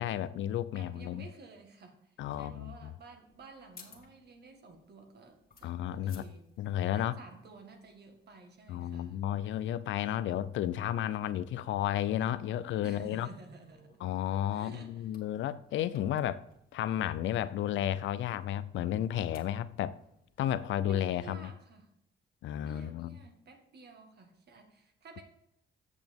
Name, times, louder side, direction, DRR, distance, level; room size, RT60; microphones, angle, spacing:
voice 1, 0.0-1.2 2.2-2.9 5.6-6.2 6.6-7.1 8.7-13.3 14.0-16.4 16.7-20.0 20.4-21.5 22.4-23.2, left 11 dB, 75° left, 0.5 m, -32 dB
voice 2, 0.7-6.5 6.9-9.2 12.8-14.0 14.5-15.1 20.8-21.9 22.6-25.2, right 4 dB, 55° right, 1.7 m, -53 dB
sound 1, 3.3-20.7, left 5 dB, 50° left, 1.8 m, -63 dB
8.2 x 6.8 x 3.5 m
cardioid pair, 90°, 20 cm